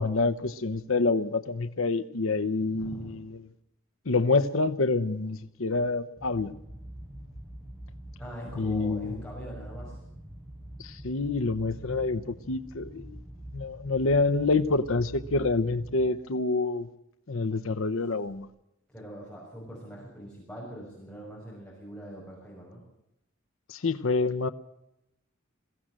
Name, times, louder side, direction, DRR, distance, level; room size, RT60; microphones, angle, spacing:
voice 1, 0.0-3.3 4.1-6.5 8.6-9.2 10.8-12.2 12.5-13.2 13.5-16.9 17.3-18.5 23.7-24.5, left 3 dB, 70° left, 11 dB, 0.8 m, -27 dB
voice 2, 2.6-3.1 8.2-10.0 18.9-22.8, equal, 5° left, -4 dB, 6.1 m, -42 dB
sound 1, 6.2-16.0, right 1 dB, 20° right, 7.0 m, -45 dB
22.0 x 16.0 x 7.5 m, 0.84 s
head